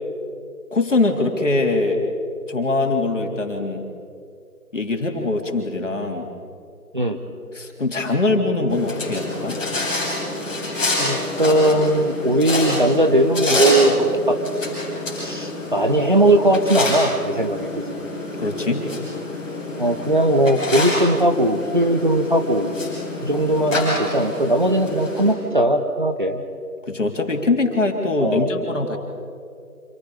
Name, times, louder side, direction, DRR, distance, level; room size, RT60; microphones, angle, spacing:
voice 1, 0.7-2.0 2.5-3.8 4.7-6.3 7.5-9.6 18.4-18.9 26.9-29.0, left 2 dB, 50° left, 2 dB, 3.6 m, -22 dB
sound 1, 8.7-25.3, left 2 dB, 5° left, 5.6 m, -27 dB
voice 2, 11.0-14.4 15.1-18.0 19.8-22.8 23.2-26.4 28.2-28.5, right 1 dB, 30° right, 5 dB, 1.1 m, -19 dB
29.5 x 27.0 x 5.0 m, 2.4 s
figure-of-eight pair, 170°, 46 cm